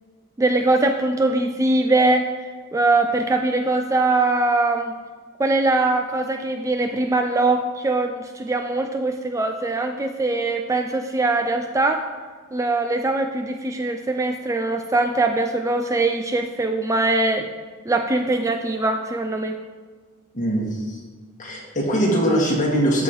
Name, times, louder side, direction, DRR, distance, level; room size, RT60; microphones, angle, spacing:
voice 1, 0.4-2.3 2.7-4.9 5.4-12.0 12.5-17.5 17.9-19.5, right 2 dB, 15° right, 5 dB, 0.3 m, -22 dB
voice 2, 20.3-21.0 21.4-23.0, equal, 40° left, -3 dB, 2.0 m, -21 dB
13.0 x 5.4 x 3.1 m, 1.5 s
head